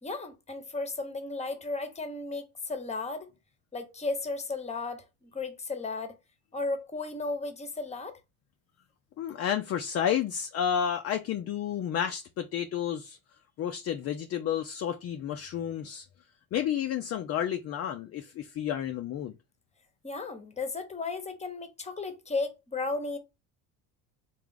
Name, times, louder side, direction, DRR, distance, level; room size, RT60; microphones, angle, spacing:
voice 1, 0.0-3.3 3.7-6.2 6.5-8.2 20.0-23.2, left 3 dB, 15° left, 0.9 m, -34 dB
voice 2, 9.2-13.2 13.6-16.1 16.5-19.3, left 9 dB, 35° left, 0.4 m, -31 dB
3.4 x 2.5 x 3.6 m
supercardioid pair, 80°, 45 cm